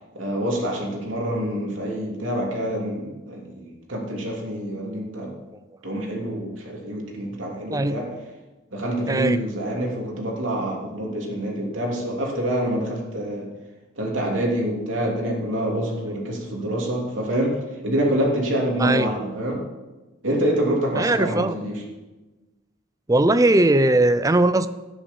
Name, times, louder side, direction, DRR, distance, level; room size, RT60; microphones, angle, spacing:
voice 1, 0.1-5.3 5.8-8.1 8.7-13.5 14.0-19.6 20.2-21.8, right 1 dB, 90° right, -1 dB, 3.2 m, -26 dB
voice 2, 9.1-9.4 18.8-19.1 21.0-21.6 23.1-24.7, right 2 dB, 15° right, 12 dB, 0.5 m, -19 dB
13.5 x 10.0 x 5.4 m, 1.2 s
head